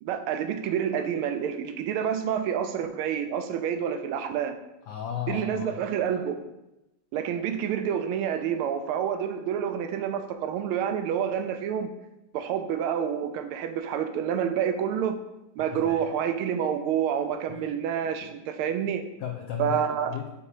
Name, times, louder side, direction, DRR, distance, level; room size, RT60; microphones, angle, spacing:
voice 1, 0.0-4.6 5.3-6.5 7.1-11.9 12.3-15.2 15.6-19.1 19.6-20.1, right 8 dB, 85° right, 8 dB, 1.5 m, -28 dB
voice 2, 4.8-5.8 15.6-16.1 17.5-17.7 18.0-18.3 19.2-20.3, left 9 dB, 80° left, 3 dB, 0.9 m, -35 dB
7.4 x 2.7 x 4.8 m, 0.94 s
omnidirectional pair, 2.3 m